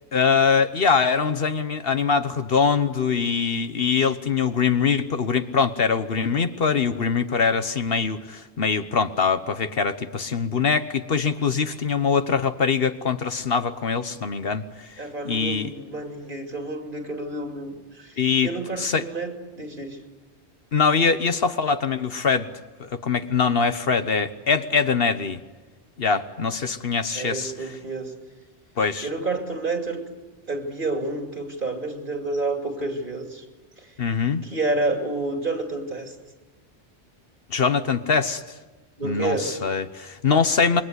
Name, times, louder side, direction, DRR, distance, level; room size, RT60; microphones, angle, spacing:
voice 1, 0.1-14.9 15.2-15.7 18.2-18.5 18.8-19.0 20.7-22.5 22.8-25.4 26.0-27.5 28.8-29.1 34.0-34.5 37.5-38.4 39.0-40.8, left 5 dB, 60° left, 10 dB, 1.2 m, -23 dB
voice 2, 11.7-12.1 15.0-20.0 27.1-28.1 29.0-30.0 30.5-33.4 33.8-33.9 34.4-36.1 39.0-39.6, right 2 dB, 50° right, 4 dB, 3.0 m, -29 dB
27.5 x 23.0 x 8.2 m, 1.2 s
omnidirectional pair, 1.2 m